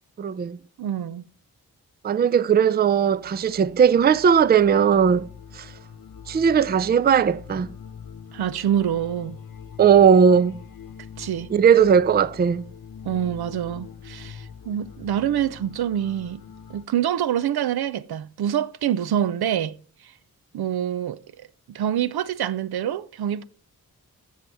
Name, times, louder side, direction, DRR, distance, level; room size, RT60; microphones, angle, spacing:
voice 1, 0.2-0.6 2.0-5.3 5.6-5.7 6.3-7.7 9.8-10.6 11.5-12.7, right 7 dB, 25° right, 0.4 m, -18 dB
voice 2, 0.8-1.2 8.3-9.4 11.2-11.5 13.0-16.4 16.7-19.8 20.0-20.1 20.5-23.5, right 10 dB, 75° right, 0.5 m, -26 dB
sound 1, 2.8-16.8, left 7 dB, 65° left, 1.0 m, -43 dB
14.5 x 5.5 x 3.4 m
cardioid pair, 45°, 38 cm